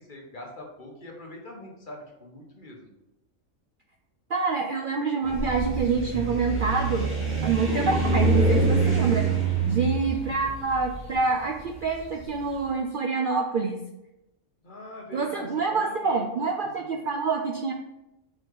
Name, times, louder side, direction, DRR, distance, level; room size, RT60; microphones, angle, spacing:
voice 1, 0.0-2.9 14.6-16.3, left 1 dB, 40° left, 0 dB, 1.2 m, -42 dB
voice 2, 4.3-7.1 7.4-9.3 9.7-13.8 15.1-17.7, right 4 dB, 60° right, 3 dB, 0.6 m, -26 dB
sound 1, 5.2-12.4, right 3 dB, 10° right, 2.3 m, -25 dB
4.9 x 4.2 x 4.6 m, 0.91 s
omnidirectional pair, 1.3 m